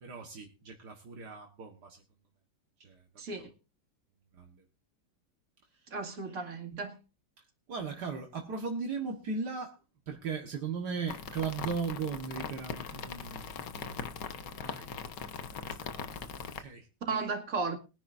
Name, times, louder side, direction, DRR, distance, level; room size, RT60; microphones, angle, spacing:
voice 1, 0.0-2.0 2.8-3.0 3.4-3.5 4.3-4.6 5.7-5.9 7.7-9.8 10.1-15.0 15.3-16.1 16.5-16.9, right 5 dB, 70° right, 2.0 m, -38 dB
voice 2, 3.2-3.5 5.9-7.0 17.1-17.8, right 4 dB, 50° right, 2.7 m, -34 dB
sound 1, 11.1-16.6, left 6 dB, 80° left, 1.8 m, -40 dB
22.0 x 10.0 x 2.6 m
omnidirectional pair, 1.8 m